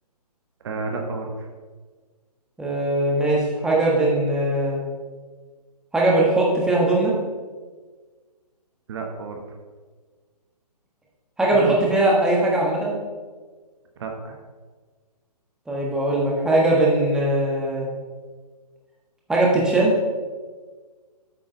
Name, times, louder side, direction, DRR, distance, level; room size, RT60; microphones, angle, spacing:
voice 1, 0.6-1.5 8.9-9.4 11.5-11.9 14.0-14.4, right 4 dB, 40° right, 3 dB, 1.0 m, -31 dB
voice 2, 2.6-4.8 5.9-7.1 11.4-12.9 15.7-17.9 19.3-19.9, right 1 dB, 5° right, -4 dB, 1.3 m, -20 dB
8.5 x 6.3 x 4.4 m, 1.4 s
figure-of-eight pair, 135°, 21 cm